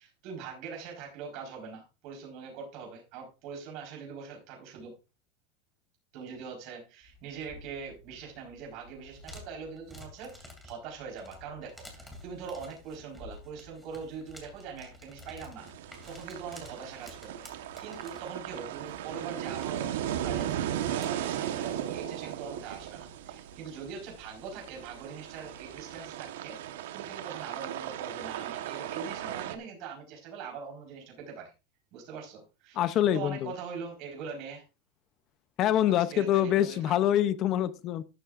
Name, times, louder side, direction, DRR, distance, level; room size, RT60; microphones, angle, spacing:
voice 1, 0.0-4.9 6.1-15.7 16.1-26.6 26.9-31.5 31.9-34.6 36.1-36.9, right 6 dB, 40° right, 0 dB, 4.2 m, -42 dB
sound 1, 7.0-26.1, left 1 dB, ahead, 2.7 m, -53 dB
sound 2, 15.6-29.6, right 11 dB, 80° right, 1.1 m, -37 dB
voice 2, 32.8-33.5 35.6-38.0, left 11 dB, 30° left, 14 dB, 0.6 m, -25 dB
12.5 x 11.5 x 2.5 m, 0.30 s
supercardioid pair, 170°, 0 cm